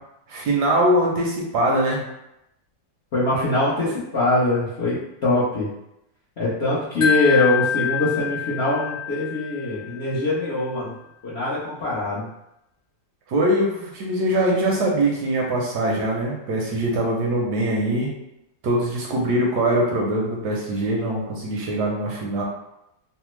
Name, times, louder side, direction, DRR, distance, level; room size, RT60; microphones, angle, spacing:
voice 1, 0.3-2.0 13.3-18.1 18.6-22.4, right 1 dB, 75° right, -2 dB, 1.1 m, -22 dB
voice 2, 3.1-5.7 6.4-10.9 11.2-12.3, left 2 dB, 60° left, -10 dB, 0.6 m, -23 dB
Wind chime, 7.0-10.1, left 9 dB, 90° left, 1.4 m, -26 dB
3.3 x 2.0 x 3.0 m, 0.85 s
omnidirectional pair, 2.0 m